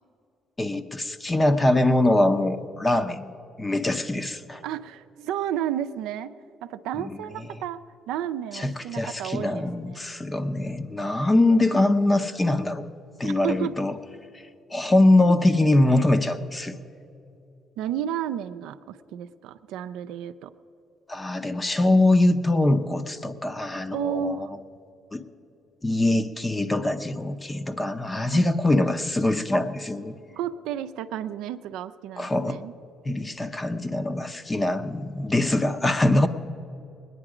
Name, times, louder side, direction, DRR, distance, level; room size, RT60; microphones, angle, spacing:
voice 1, 0.6-3.3 3.6-4.6 7.0-7.2 8.5-12.9 13.2-13.9 14.7-16.8 21.1-24.5 25.1-25.2 25.8-30.2 32.2-32.6 33.0-36.3, left 2 dB, 20° left, 10 dB, 0.7 m, -23 dB
voice 2, 4.6-6.3 6.6-10.0 13.2-13.8 17.8-20.5 23.9-24.5 28.3-28.5 30.3-32.7, right 11 dB, 85° right, 10 dB, 0.4 m, -32 dB
20.5 x 9.7 x 5.0 m, 2.8 s
cardioid pair, 85°, 0 cm